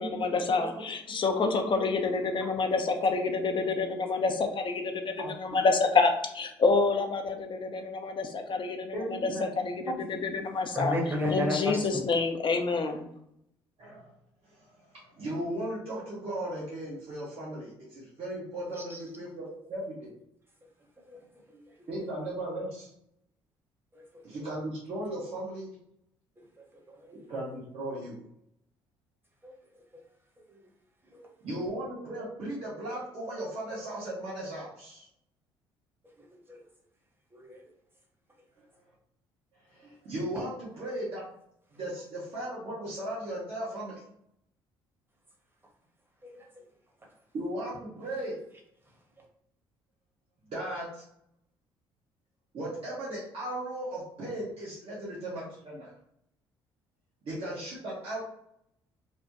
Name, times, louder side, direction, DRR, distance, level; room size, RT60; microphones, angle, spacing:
voice 1, 0.0-11.0 11.3-13.1, left 4 dB, 40° left, 5 dB, 0.6 m, -28 dB
voice 2, 1.4-1.8 5.2-5.3 8.9-9.5 13.8-14.1 14.4-20.1 21.9-22.9 24.2-25.7 27.3-28.2 31.4-35.1 38.6-38.7 39.7-41.3 41.7-44.0 47.3-48.4 50.5-51.0 52.5-55.9 57.2-58.2, right 1 dB, 50° right, -7 dB, 1.2 m, -36 dB
voice 3, 10.7-11.9 18.8-19.0 21.1-21.2 21.5-21.6 23.9-24.0 26.6-27.1 29.4-29.5 30.5-30.6 31.1-31.3 36.2-36.6 37.3-37.6 39.8-39.9 46.2-46.6 49.2-49.3, left 1 dB, 15° right, -1 dB, 1.2 m, -34 dB
3.3 x 2.1 x 2.9 m, 0.74 s
hypercardioid pair, 50°, 13 cm